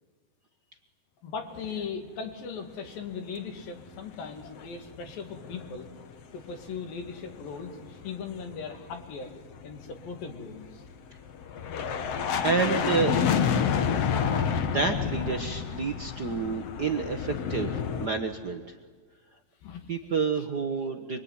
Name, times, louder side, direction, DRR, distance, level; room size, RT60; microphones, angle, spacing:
voice 1, 1.2-5.9 6.3-9.3 9.6-10.8 19.6-19.9, left 5 dB, 90° left, 5 dB, 4.3 m, -38 dB
sound 1, 3.9-4.9 5.1-6.0 6.3-18.1, left 7 dB, 55° left, 2.0 m, -30 dB
voice 2, 12.4-13.3 14.7-18.7 19.9-21.2, right 4 dB, 85° right, 6 dB, 0.9 m, -29 dB
25.5 x 24.0 x 9.7 m, 1.4 s
omnidirectional pair, 3.9 m